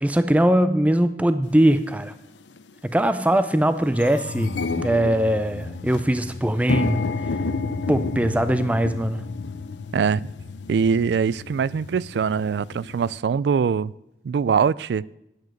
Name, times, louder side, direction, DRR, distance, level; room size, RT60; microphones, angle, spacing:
voice 1, 0.0-2.1 2.8-7.1 7.9-9.3, right 1 dB, 10° right, 0.4 m, -21 dB
sound 1, 1.6-1.7 2.5-2.7 3.1-3.2 3.5-13.2, left 4 dB, 90° left, 0.7 m, -31 dB
voice 2, 9.9-10.3 10.7-13.9 14.2-15.0, right 6 dB, 70° right, 0.3 m, -22 dB
9.3 x 9.2 x 6.5 m
head